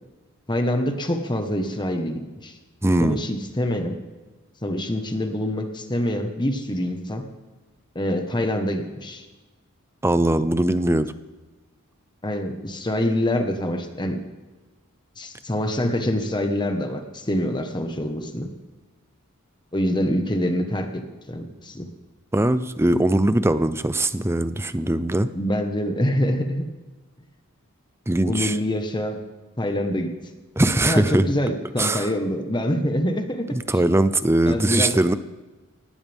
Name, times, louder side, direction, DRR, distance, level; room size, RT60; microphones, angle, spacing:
voice 1, 0.5-2.5 3.0-4.0 4.6-7.2 7.9-9.2 12.2-14.2 15.2-18.5 19.7-21.9 25.3-26.6 28.3-29.2 29.6-30.1 30.8-33.5 34.4-35.0, left 1 dB, 20° left, 5 dB, 1.3 m, -25 dB
voice 2, 2.8-3.2 10.0-11.1 22.3-25.3 28.1-28.6 30.6-31.2 31.8-32.1 33.5-35.2, right 1 dB, 10° right, 13 dB, 0.6 m, -21 dB
18.5 x 16.5 x 3.6 m, 1.2 s
head